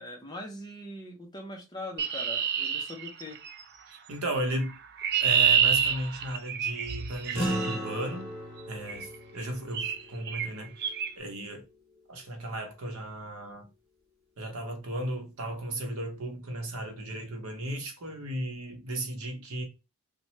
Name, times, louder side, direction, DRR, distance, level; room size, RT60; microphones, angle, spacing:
voice 1, 0.0-3.4, left 1 dB, 20° left, 0.6 m, -41 dB
Chirp tweet, 2.0-3.6 4.6-7.8 8.9-9.1 9.7-10.0 10.3-10.5 10.8-11.1, right 7 dB, 45° right, 0.3 m, -27 dB
voice 2, 3.9-4.8 5.2-8.3 8.7-11.6 12.1-13.7 14.4-19.6, right 1 dB, 75° right, 0.8 m, -35 dB
sound 1, 7.3-12.0, right 1 dB, 5° right, 1.7 m, -37 dB
3.0 x 2.1 x 3.0 m
head